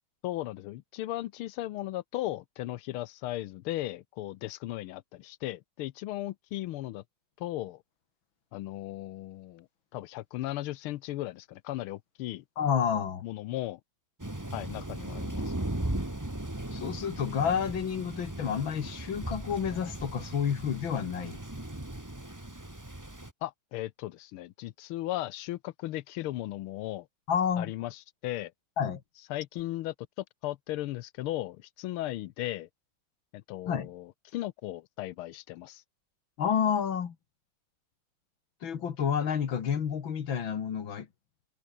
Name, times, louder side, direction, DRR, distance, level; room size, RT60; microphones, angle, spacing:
voice 1, 0.2-7.0 7.4-7.8 8.5-9.7 9.9-12.4 13.2-13.8 14.5-15.5 23.4-27.1 27.6-28.5 29.3-32.7 33.3-35.8, left 15 dB, 85° left, 1.6 m, -36 dB
voice 2, 12.6-13.2 16.7-21.4 27.3-27.7 28.8-29.0 33.7-33.9 36.4-37.2 38.6-41.1, left 7 dB, 70° left, 2.5 m, -29 dB
Thunder, 14.2-23.3, right 1 dB, 10° right, 2.0 m, -37 dB
omnidirectional pair, 2.3 m